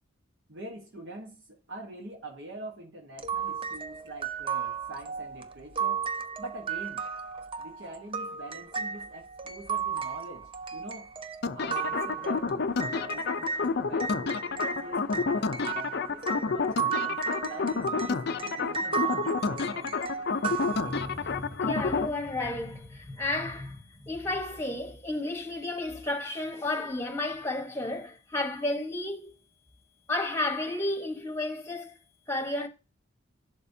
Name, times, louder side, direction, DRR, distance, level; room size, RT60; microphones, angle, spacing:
voice 1, 0.5-6.0 6.4-7.0 7.6-11.1 11.5-19.9, right 2 dB, 55° right, 1.2 m, -44 dB
sound 1, 3.2-13.7 14.0-21.4, right 6 dB, 25° right, 0.5 m, -34 dB
sound 2, 11.4-22.1, left 4 dB, 50° left, 0.5 m, -30 dB
voice 2, 20.6-29.3 30.1-31.9 32.3-32.7, left 2 dB, 10° left, 1.1 m, -32 dB
11.0 x 5.7 x 2.7 m
head